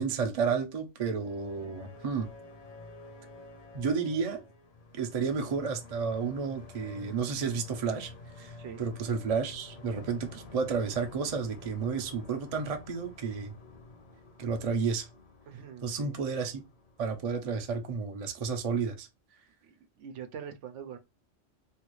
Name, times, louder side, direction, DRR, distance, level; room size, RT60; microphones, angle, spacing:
voice 1, 0.0-2.3 3.7-4.4 4.9-8.1 8.4-13.5 14.4-15.1 15.8-16.6 17.0-19.1, right 5 dB, 40° right, 0.5 m, -31 dB
sound 1, 1.1-17.9, left 2 dB, 65° left, 1.2 m, -50 dB
voice 2, 15.5-16.2 19.6-21.0, right 8 dB, 80° right, 0.9 m, -44 dB
3.3 x 2.4 x 3.0 m
omnidirectional pair, 1.2 m